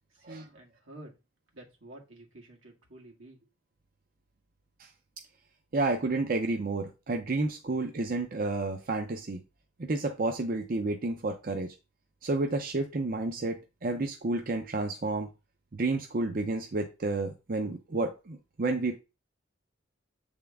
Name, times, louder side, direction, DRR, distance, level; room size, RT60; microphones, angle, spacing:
voice 1, 0.1-1.2 1.5-3.4, right 1 dB, 85° right, 0 dB, 1.9 m, -49 dB
voice 2, 5.7-9.4 9.8-11.7 12.2-15.3 15.7-19.0, right 2 dB, 45° right, 4 dB, 0.6 m, -30 dB
7.8 x 3.6 x 3.5 m, 0.28 s
head